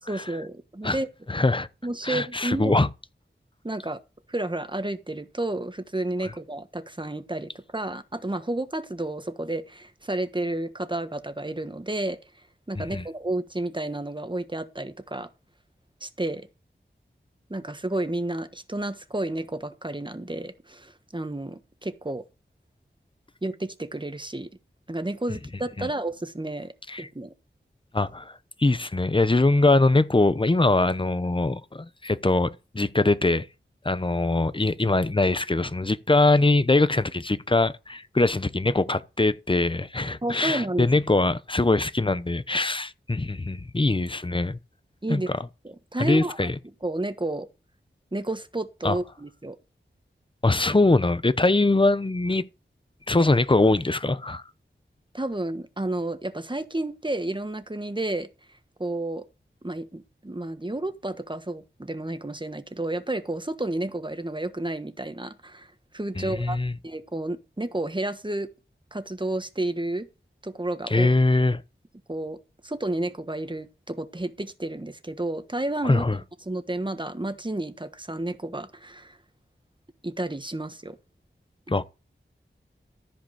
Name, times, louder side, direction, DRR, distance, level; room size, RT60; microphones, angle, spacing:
voice 1, 0.1-1.1 1.8-2.8 3.6-4.0 4.3-12.2 12.7-15.3 16.0-16.5 17.5-22.2 23.4-24.5 24.9-26.7 27.0-27.3 40.2-40.9 45.0-45.3 45.6-46.5 46.8-47.5 48.1-49.6 55.1-58.3 58.8-59.2 59.6-66.6 66.8-68.5 68.9-70.1 70.4-71.1 72.1-72.4 72.6-76.0 76.4-79.2 80.0-81.0, right 1 dB, 25° right, 1.4 m, -31 dB
voice 2, 1.3-1.7 2.0-2.9 12.8-13.0 25.8-25.9 26.9-27.1 27.9-28.3 28.6-33.5 33.8-44.6 45.1-45.4 46.0-46.5 48.8-49.0 50.4-52.4 53.1-54.4 66.2-66.7 70.9-71.6 75.8-76.2 81.7-81.9, left 2 dB, 25° left, 0.8 m, -22 dB
14.0 x 5.1 x 6.5 m
wide cardioid pair, 50°, 20 cm